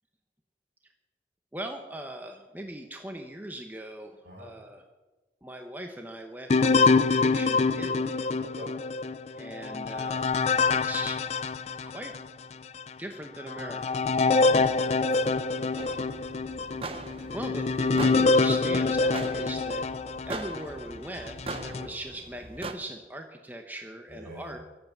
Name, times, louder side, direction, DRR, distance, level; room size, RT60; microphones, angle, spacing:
voice 1, 1.5-4.8 5.4-8.3 9.4-10.3 10.7-11.2 11.8-12.1 13.0-14.7 17.3-19.9 20.3-24.6, right 1 dB, 10° right, 4 dB, 1.0 m, -40 dB
sound 1, 6.5-12.3 12.8-12.9 13.5-20.7 21.3-21.9, left 3 dB, 35° left, 0.5 m, -25 dB
voice 2, 8.4-8.8 10.5-10.8 14.4-15.4 21.7-21.9 24.1-24.6, equal, 65° right, -1 dB, 5.9 m, -44 dB
sound 2, 15.8-22.7, right 3 dB, 30° right, 0.9 m, -41 dB
24.0 x 8.1 x 7.3 m, 1.2 s
head